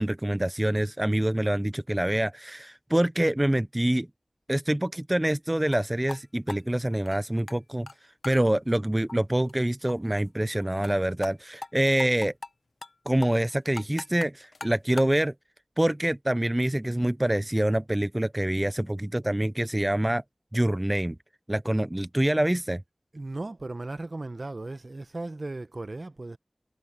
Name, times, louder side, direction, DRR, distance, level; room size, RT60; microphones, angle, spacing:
voice 1, 0.0-4.1 4.5-7.9 8.2-12.3 13.1-15.3 15.8-20.2 20.5-21.2 21.5-22.8, right 1 dB, 20° right, 0.5 m, -26 dB
sound 1, 5.7-5.8 6.1-6.2 6.5-7.6 7.9-8.0 8.2-8.4 8.7-8.8 9.1-9.2 9.5-9.6 9.9-10.0 10.2-10.3 10.6-11.0 11.2-11.3 11.6-11.7 12.0-12.5 12.8-12.9 13.2-15.2, left 3 dB, 85° left, 0.9 m, -40 dB
voice 2, 23.1-26.4, right 2 dB, 55° right, 0.9 m, -36 dB
wide cardioid pair, 40°, 0 cm